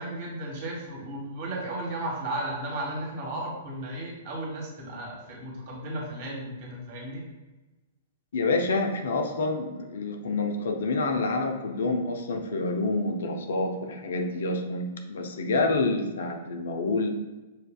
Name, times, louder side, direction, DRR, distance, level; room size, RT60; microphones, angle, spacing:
voice 1, 0.0-7.2, right 1 dB, 50° right, -2 dB, 1.4 m, -34 dB
voice 2, 8.3-17.1, left 3 dB, 65° left, 4 dB, 0.6 m, -28 dB
6.5 x 2.5 x 2.3 m, 1.2 s
figure-of-eight pair, 110°, 0 cm